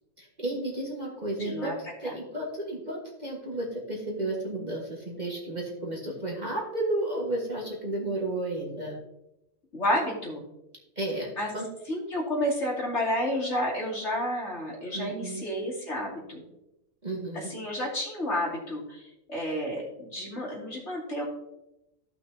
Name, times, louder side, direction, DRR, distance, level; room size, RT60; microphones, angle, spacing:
voice 1, 0.2-1.7 2.0-9.0 11.0-11.7 14.9-15.4 17.0-17.5, right 1 dB, 30° right, -2 dB, 1.7 m, -32 dB
voice 2, 1.4-1.7 2.0-2.1 9.7-10.4 11.4-11.5 11.9-16.5 17.3-21.2, left 1 dB, 50° left, -4 dB, 3.0 m, -31 dB
15.0 x 5.9 x 2.8 m, 0.88 s
omnidirectional pair, 1.5 m